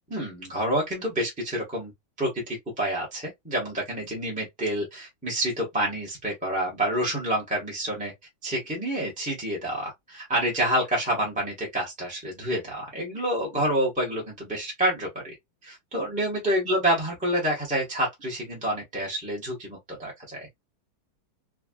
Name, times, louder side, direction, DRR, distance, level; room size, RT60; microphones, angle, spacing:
voice 1, 0.1-1.9 2.2-8.1 8.4-15.3 15.6-20.5, right 1 dB, 5° right, 0.8 m, -28 dB
3.5 x 2.4 x 2.2 m
omnidirectional pair, 2.1 m